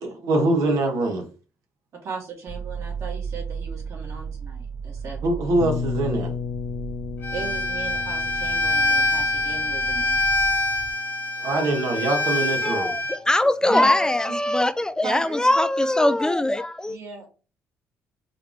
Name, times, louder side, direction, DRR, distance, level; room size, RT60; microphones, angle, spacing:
voice 1, 0.0-1.2 5.2-6.3 11.4-12.9, right 2 dB, 75° right, 1.5 m, -23 dB
voice 2, 1.9-5.4 7.3-10.3 13.6-13.9 14.3-14.4 15.0-15.6 16.9-17.3, right 4 dB, 60° right, 2.3 m, -36 dB
sound 1, 2.5-10.9, right 6 dB, 15° right, 0.7 m, -35 dB
sound 2, 5.6-11.4, left 7 dB, 75° left, 0.5 m, -34 dB
Bowed string instrument, 7.2-13.2, left 1 dB, 40° left, 1.0 m, -25 dB
voice 3, 12.6-17.0, left 1 dB, 15° left, 0.3 m, -21 dB
4.7 x 3.5 x 3.1 m
cardioid pair, 90°, 6 cm